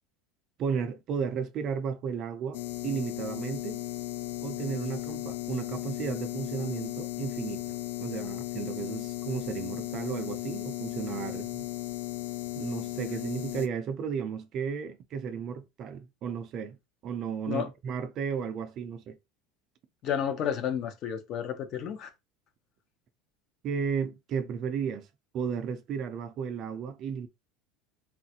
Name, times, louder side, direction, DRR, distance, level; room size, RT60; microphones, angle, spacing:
voice 1, 0.6-2.6 2.8-3.8 4.4-7.6 8.0-11.7 12.6-16.8 17.0-19.2 23.6-25.1 25.3-27.3, right 6 dB, 40° right, 0.4 m, -34 dB
sound 1, 2.5-13.7, left 19 dB, 90° left, 0.4 m, -36 dB
voice 2, 20.0-22.1, left 8 dB, 40° left, 0.6 m, -31 dB
3.2 x 2.4 x 2.8 m
cardioid pair, 160°, 0 cm